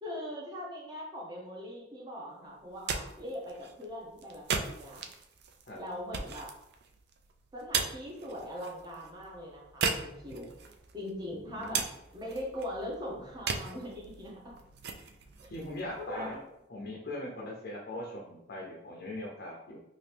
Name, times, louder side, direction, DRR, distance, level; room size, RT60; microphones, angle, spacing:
voice 1, 0.0-5.0 5.7-6.5 7.5-10.5 10.9-11.9 12.1-14.6 15.4-15.5 16.0-16.3, equal, 20° right, -3 dB, 0.8 m, -41 dB
sound 1, 2.6-16.5, right 5 dB, 60° right, 0.3 m, -39 dB
voice 2, 11.3-11.7 15.5-16.4 16.7-19.8, left 1 dB, 55° left, -2 dB, 0.5 m, -40 dB
2.9 x 2.5 x 3.3 m, 0.86 s
head